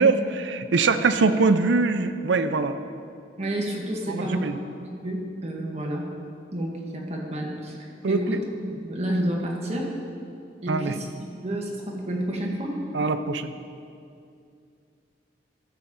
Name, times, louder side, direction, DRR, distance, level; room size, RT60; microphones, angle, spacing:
voice 1, 0.0-2.8 4.1-4.6 8.0-8.2 10.7-10.9 12.9-13.5, right 4 dB, 85° right, 11 dB, 0.5 m, -22 dB
voice 2, 3.4-4.5 5.0-6.1 6.5-7.8 8.1-8.4 8.8-9.9 10.6-11.0 11.4-12.8, right 1 dB, 40° right, -1 dB, 1.5 m, -29 dB
14.0 x 6.8 x 3.7 m, 2.5 s
head